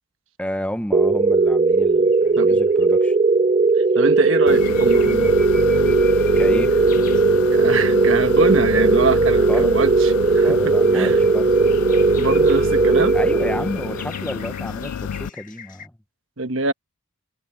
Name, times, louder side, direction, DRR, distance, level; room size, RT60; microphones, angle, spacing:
voice 1, 0.4-3.2 6.2-6.8 9.5-9.7 10.4-11.5 13.1-15.9, equal, 5° left, 0.9 m, -31 dB
sound 1, 0.9-14.1, right 3 dB, 25° right, 0.3 m, -17 dB
sound 2, 2.1-3.1 3.7-7.9 8.2-8.9 9.7-15.9, left 6 dB, 35° left, 1.7 m, -42 dB
voice 2, 3.9-5.4 7.5-11.2 12.2-13.2 16.4-16.7, right 3 dB, 60° right, 1.3 m, -24 dB
sound 3, 4.5-15.3, left 7 dB, 80° left, 0.4 m, -29 dB
head